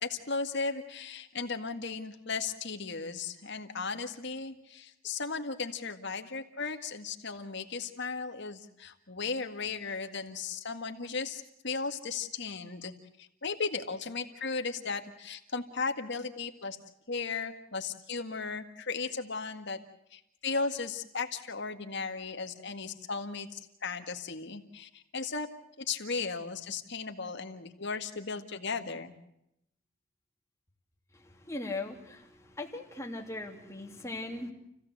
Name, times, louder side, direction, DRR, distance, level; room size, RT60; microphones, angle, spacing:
voice 1, 0.0-16.8 17.1-19.8 20.1-25.5 25.8-29.1, left 4 dB, 55° left, 6 dB, 1.9 m, -36 dB
voice 2, 31.5-32.2 32.5-34.5, left 2 dB, 15° left, 2 dB, 2.8 m, -38 dB
29.5 x 16.0 x 8.0 m, 0.81 s
head